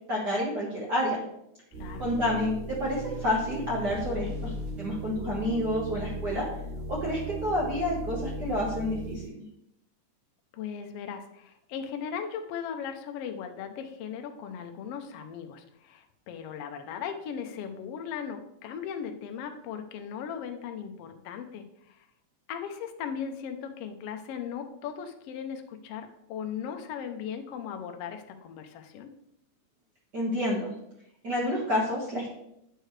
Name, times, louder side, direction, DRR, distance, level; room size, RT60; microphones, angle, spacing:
voice 1, 0.1-1.2 2.0-4.5 4.8-6.5 6.9-9.4 30.1-30.7 31.2-32.3, left 1 dB, 45° right, -5 dB, 1.5 m, -29 dB
sound 1, 1.7-9.3, right 1 dB, 75° right, 4.4 m, -37 dB
voice 2, 1.8-2.1 10.5-22.1 22.5-29.1, left 7 dB, 75° left, 5 dB, 1.4 m, -38 dB
8.9 x 6.5 x 3.3 m, 0.78 s
omnidirectional pair, 3.6 m